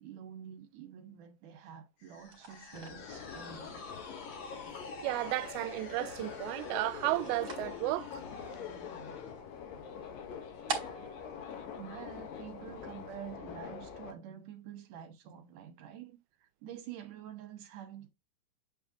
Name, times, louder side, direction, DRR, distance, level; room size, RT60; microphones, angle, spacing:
voice 1, 0.0-3.9 11.8-16.2 16.6-18.1, right 9 dB, 65° right, 2.6 m, -47 dB
sound 1, 2.0-9.4, left 5 dB, 50° left, 1.7 m, -48 dB
sound 2, 2.2-12.6, right 4 dB, 35° right, 3.1 m, -47 dB
Subway metro underground, 2.7-14.1, left 7 dB, 70° left, 3.0 m, -45 dB
voice 2, 5.0-8.2, right 19 dB, 85° right, 2.4 m, -33 dB
9.1 x 4.6 x 3.6 m
omnidirectional pair, 4.4 m